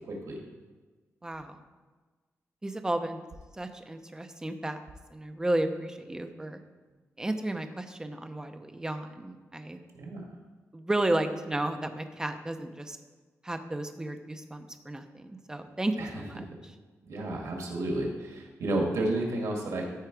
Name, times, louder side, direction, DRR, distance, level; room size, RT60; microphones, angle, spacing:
voice 1, 0.1-0.4 10.0-10.2 16.0-16.1 17.0-19.8, right 1 dB, 90° right, 0 dB, 2.1 m, -31 dB
voice 2, 1.2-1.6 2.6-3.2 3.5-4.8 5.1-6.6 7.2-9.8 10.7-13.0 13.4-16.7, right 1 dB, 10° right, 7 dB, 0.6 m, -33 dB
14.0 x 4.7 x 4.6 m, 1.3 s
wide cardioid pair, 150°, 5 cm